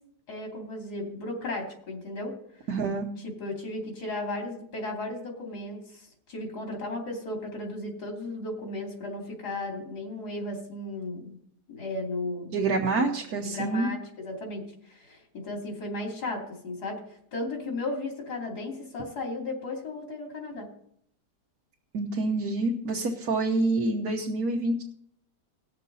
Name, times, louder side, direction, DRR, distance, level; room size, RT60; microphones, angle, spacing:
voice 1, 0.3-2.3 3.4-11.4 11.7-12.5 12.9-13.0 13.4-20.7, left 2 dB, 80° left, 1 dB, 3.1 m, -35 dB
voice 2, 2.7-3.1 12.5-13.9 21.9-24.8, right 3 dB, 65° right, -1 dB, 1.6 m, -27 dB
19.0 x 6.6 x 4.0 m, 0.67 s
omnidirectional pair, 1.7 m